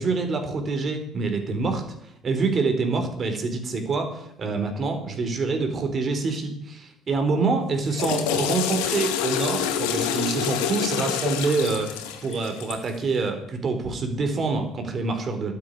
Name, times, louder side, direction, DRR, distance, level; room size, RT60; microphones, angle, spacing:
voice 1, 0.0-1.8 2.2-15.5, right 4 dB, 45° right, 6 dB, 4.3 m, -26 dB
Water / Toilet flush, 7.7-12.9, left 9 dB, 80° left, 2.0 m, -27 dB
13.0 x 8.8 x 9.9 m, 0.80 s
hypercardioid pair, 65°, 0 cm